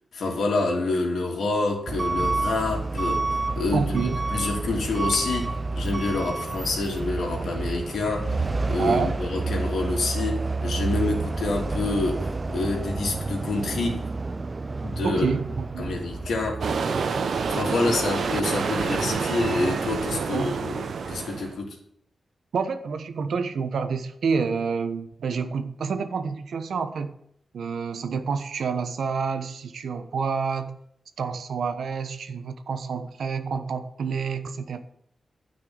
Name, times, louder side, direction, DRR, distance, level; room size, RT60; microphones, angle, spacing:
voice 1, 0.1-14.1 14.8-15.3 15.8-16.7 17.5-21.8, left 3 dB, 90° left, 3.2 m, -27 dB
Truck / Alarm, 1.9-19.1, right 3 dB, 25° right, 0.5 m, -30 dB
voice 2, 3.7-4.2 8.8-9.2 15.0-16.0 20.1-20.6 22.5-27.1 27.5-30.8 31.2-34.8, right 5 dB, 90° right, 1.2 m, -28 dB
sound 1, 16.6-21.5, right 5 dB, 70° right, 1.0 m, -28 dB
12.5 x 6.0 x 7.8 m
wide cardioid pair, 175°, 0 cm